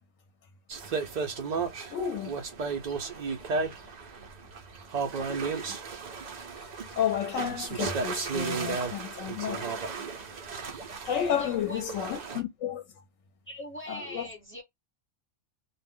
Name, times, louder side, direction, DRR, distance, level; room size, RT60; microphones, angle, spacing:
sound 1, 0.7-12.4, right 4 dB, 80° right, 0.3 m, -34 dB
voice 1, 1.9-2.4 6.6-6.7 6.9-9.8 11.0-12.8 13.9-14.3, left 9 dB, 70° left, 0.9 m, -31 dB
voice 2, 11.4-11.8 13.5-14.6, left 1 dB, 10° left, 0.7 m, -41 dB
2.3 x 2.1 x 3.5 m
omnidirectional pair, 1.5 m